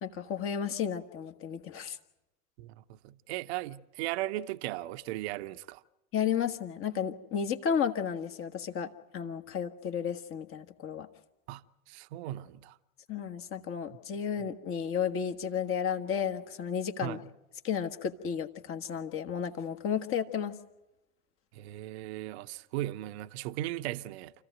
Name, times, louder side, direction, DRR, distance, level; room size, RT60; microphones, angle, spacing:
voice 1, 0.0-2.0 6.1-11.1 13.1-17.2 17.6-20.6, left 7 dB, 30° left, 1.5 m, -33 dB
voice 2, 2.6-5.8 11.5-11.6 11.9-12.8 17.0-17.3 21.5-24.3, right 15 dB, 50° right, 0.8 m, -37 dB
28.5 x 15.0 x 9.1 m
figure-of-eight pair, 80°, 41 cm